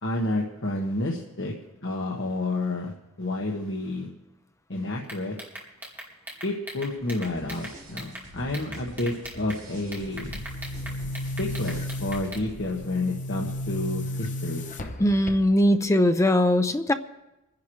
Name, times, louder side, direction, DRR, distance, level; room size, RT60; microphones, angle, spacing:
voice 1, 0.0-1.5 1.8-4.1 4.7-5.3 6.4-10.3 11.4-14.6, left 2 dB, 60° left, -1 dB, 1.4 m, -30 dB
sound 1, 5.0-8.2 8.5-9.6 9.9-12.4, right 1 dB, 10° right, 2.4 m, -40 dB
sound 2, 7.2-12.5, right 1 dB, 35° right, 3.2 m, -46 dB
Boom, 10.0-15.8, left 1 dB, 35° left, 0.9 m, -34 dB
voice 2, 15.0-16.9, left 1 dB, 15° left, 9 dB, 0.6 m, -20 dB
26.0 x 10.5 x 3.2 m, 0.95 s
head